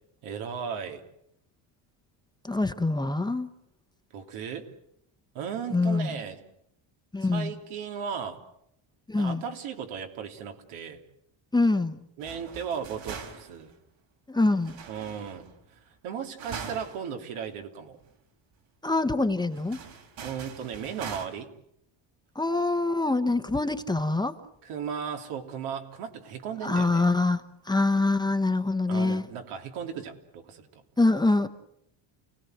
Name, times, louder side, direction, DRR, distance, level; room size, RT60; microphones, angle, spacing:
voice 1, 0.2-1.0 4.1-4.7 5.3-6.4 7.2-8.4 9.1-11.0 12.2-13.7 14.9-18.0 20.2-21.5 24.6-27.0 28.9-30.8, right 7 dB, 85° right, 4 dB, 3.2 m, -36 dB
voice 2, 2.4-3.5 5.7-6.2 7.1-7.5 9.1-9.4 11.5-12.0 14.3-14.8 18.8-19.8 22.3-24.3 26.6-29.3 31.0-31.5, left 2 dB, 10° left, 7 dB, 1.0 m, -25 dB
sound 1, 12.2-13.7 14.6-15.6 16.4-17.1 17.5-17.6 18.0-18.1 19.5-21.3, right 6 dB, 65° right, 4.5 m, -42 dB
29.5 x 18.5 x 7.9 m, 0.77 s
cardioid pair, 135°, 48 cm